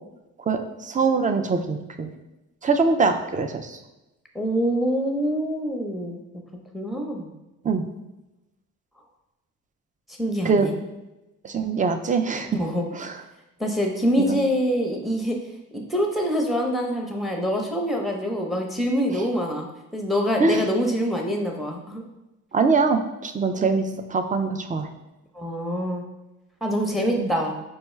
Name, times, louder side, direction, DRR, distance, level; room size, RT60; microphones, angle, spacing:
voice 1, 0.5-2.1 2.6-3.8 7.6-7.8 10.4-10.7 11.4-12.5 12.9-13.1 14.3-14.4 19.1-19.2 20.4-20.6 22.5-24.9 27.2-27.3, right 4 dB, 25° right, 7 dB, 0.4 m, -23 dB
voice 2, 4.3-6.2 6.7-7.3 10.2-10.7 12.5-12.8 13.6-15.4 15.7-19.7 19.9-22.0 25.3-26.0 26.6-27.5, equal, ahead, 1 dB, 0.7 m, -25 dB
4.4 x 2.2 x 3.1 m, 1.0 s
supercardioid pair, 65°, 34 cm